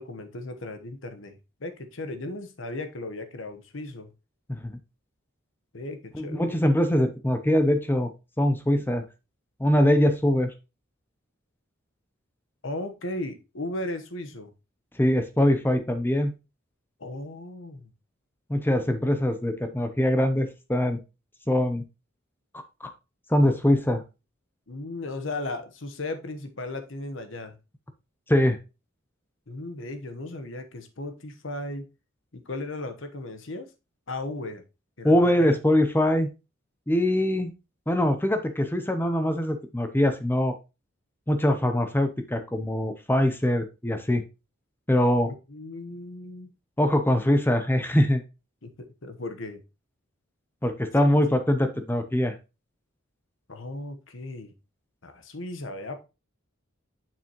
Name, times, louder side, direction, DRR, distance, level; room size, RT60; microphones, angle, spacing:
voice 1, 0.0-4.1 5.7-6.6 12.6-14.5 17.0-17.9 24.7-27.6 29.5-31.8 32.3-33.7 34.1-34.6 35.0-35.6 45.5-46.5 48.6-49.6 51.0-51.4 53.5-54.5 55.0-56.0, left 2 dB, 65° left, 8 dB, 1.1 m, -36 dB
voice 2, 6.1-8.1 8.4-9.0 9.6-10.5 15.0-16.3 18.5-21.0 21.5-21.8 22.8-22.9 23.3-24.0 28.3-28.6 35.0-36.3 36.9-37.5 37.9-40.5 41.3-44.2 44.9-45.3 46.8-48.2 50.6-52.3, left 1 dB, 10° left, 8 dB, 0.7 m, -23 dB
7.1 x 6.0 x 3.0 m, 0.27 s
head